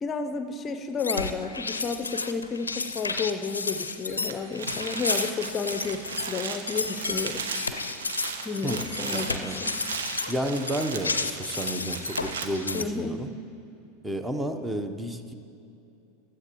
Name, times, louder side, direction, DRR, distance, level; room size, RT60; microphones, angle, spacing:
voice 1, 0.0-7.5 8.4-9.7 12.7-13.3, left 4 dB, 30° left, 9 dB, 0.6 m, -32 dB
sound 1, 1.0-12.8, left 4 dB, 90° left, 0.5 m, -32 dB
sound 2, 4.1-12.5, right 5 dB, 75° right, 1.0 m, -36 dB
voice 2, 8.6-9.6 10.3-13.3 14.0-15.3, right 1 dB, 10° right, 8 dB, 0.8 m, -31 dB
15.5 x 12.5 x 3.0 m, 2.6 s
figure-of-eight pair, 85°, 0 cm